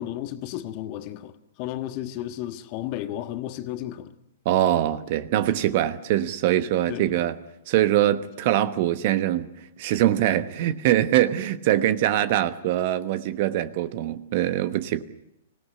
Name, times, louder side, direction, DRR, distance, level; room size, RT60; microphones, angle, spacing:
voice 1, 0.0-4.1 6.9-7.1, left 13 dB, 40° left, 1.4 m, -33 dB
voice 2, 4.4-7.4 7.7-9.5 9.8-15.0, right 12 dB, 50° right, 1.2 m, -23 dB
25.5 x 17.5 x 9.6 m
figure-of-eight pair, 115°, 0 cm